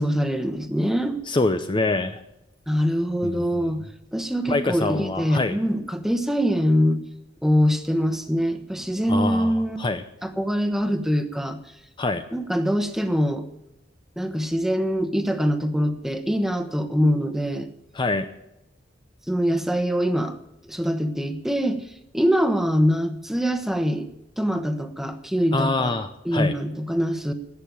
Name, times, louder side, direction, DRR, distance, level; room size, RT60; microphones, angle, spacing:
voice 1, 0.0-1.2 2.7-3.8 4.1-7.0 7.4-9.8 10.2-11.6 12.3-13.5 14.2-17.7 19.3-20.4 20.7-21.8 22.1-24.1 24.4-25.9 26.2-27.3, equal, ahead, 8 dB, 1.1 m, -23 dB
voice 2, 1.3-2.2 3.2-3.7 4.5-5.6 9.1-10.0 12.0-12.2 17.9-18.3 25.5-26.5, left 2 dB, 25° left, 8 dB, 0.6 m, -25 dB
17.5 x 6.6 x 9.3 m, 0.85 s
head